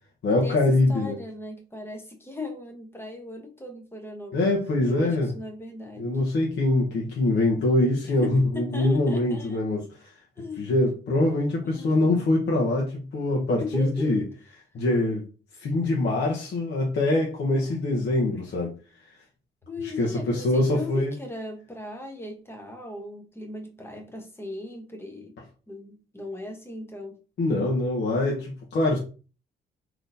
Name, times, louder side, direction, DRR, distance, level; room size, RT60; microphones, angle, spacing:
voice 1, 0.2-1.2 4.3-5.3 6.0-10.2 10.6-14.2 14.7-15.3 15.5-19.0 19.8-21.1 27.4-29.0, left 2 dB, 60° left, 0.9 m, -24 dB
voice 2, 0.9-6.1 8.0-9.6 10.4-10.7 11.6-12.3 13.6-14.2 19.7-25.3 25.7-27.2, left 2 dB, 10° left, 1.0 m, -38 dB
3.6 x 2.9 x 2.6 m
cardioid pair, 90°, 20 cm